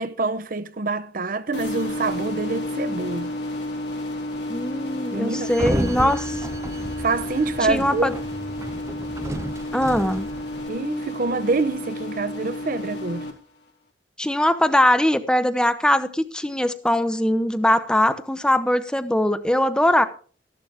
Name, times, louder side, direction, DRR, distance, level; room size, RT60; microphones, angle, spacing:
voice 1, 0.0-3.3 5.1-6.4 7.0-8.1 10.7-13.3, right 3 dB, 50° right, 0.7 m, -26 dB
sound 1, 1.5-13.3, left 1 dB, 80° left, 2.9 m, -31 dB
voice 2, 4.5-6.4 7.6-8.1 9.7-10.3 14.2-20.0, left 1 dB, 5° left, 0.8 m, -21 dB
Sliding door, 5.4-10.7, right 1 dB, 15° right, 0.5 m, -32 dB
13.5 x 11.5 x 3.5 m
head